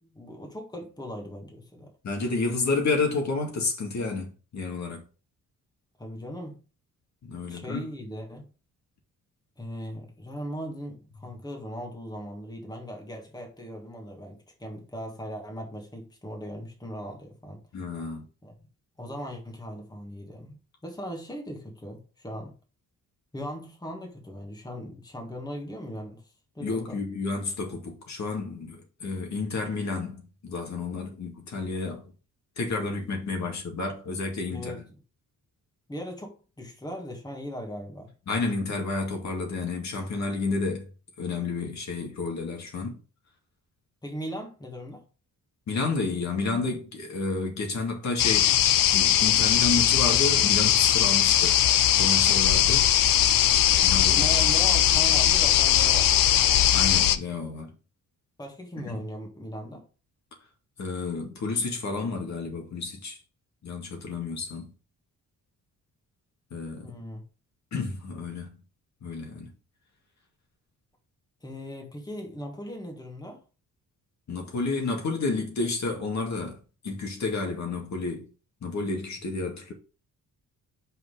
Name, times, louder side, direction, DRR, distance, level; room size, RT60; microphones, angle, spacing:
voice 1, 0.0-1.9 6.0-6.6 7.5-8.5 9.6-17.6 18.4-18.6 19.0-20.5 20.8-22.5 23.3-27.0 34.5-34.8 35.9-38.1 44.0-45.0 52.9-56.3 58.4-59.8 66.8-67.2 71.4-73.4, equal, 10° left, 1.6 m, -39 dB
voice 2, 2.0-5.0 7.2-7.9 17.7-18.3 26.6-32.0 32.6-34.8 38.3-40.9 41.2-43.0 45.7-48.6 48.9-51.6 52.0-52.9 53.8-54.2 56.7-57.7 58.8-59.0 60.8-63.2 63.6-64.7 66.5-67.0 67.7-68.6 69.0-69.5 74.3-76.6 76.8-78.3 78.6-79.7, left 3 dB, 55° left, 2.1 m, -30 dB
sound 1, 48.2-57.2, left 11 dB, 80° left, 0.7 m, -20 dB
5.5 x 4.6 x 4.9 m
cardioid pair, 125°, 33 cm